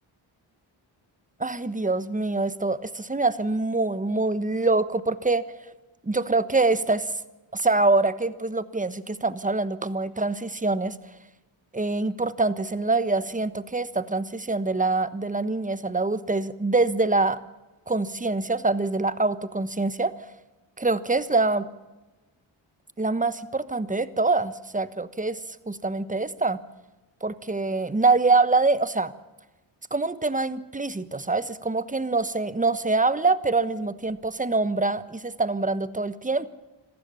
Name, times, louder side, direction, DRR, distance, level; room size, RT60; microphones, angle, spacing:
voice 1, 1.4-5.5 6.0-7.1 7.5-10.9 11.7-17.4 17.9-20.1 20.8-21.7 23.0-25.4 25.7-26.6 27.2-29.1 29.9-36.5, right 3 dB, 15° right, 14 dB, 1.2 m, -25 dB
26.0 x 15.0 x 7.0 m, 1.1 s
cardioid pair, 65°, 49 cm